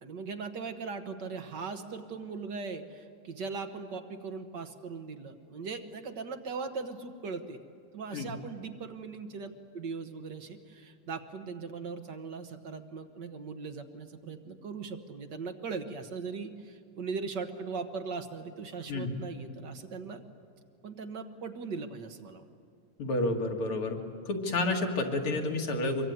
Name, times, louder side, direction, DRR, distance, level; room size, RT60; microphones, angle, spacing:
voice 1, 0.0-7.6 7.9-20.2 20.8-22.4, right 4 dB, 55° right, 7 dB, 1.7 m, -39 dB
voice 2, 23.0-24.0 24.3-26.1, left 2 dB, 80° left, 2 dB, 2.9 m, -30 dB
24.0 x 22.5 x 9.5 m, 2.3 s
omnidirectional pair, 2.4 m